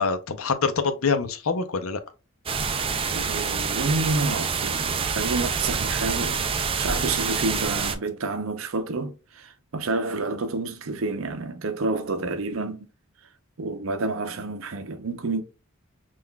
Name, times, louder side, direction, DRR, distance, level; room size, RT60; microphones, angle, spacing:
voice 1, 0.0-2.0, left 5 dB, 75° left, 0.6 m, -25 dB
sound 1, 2.5-8.0, right 5 dB, 25° right, 0.4 m, -27 dB
voice 2, 3.1-12.9 13.6-15.4, right 3 dB, 65° right, 0.6 m, -29 dB
5.7 x 2.5 x 2.2 m
head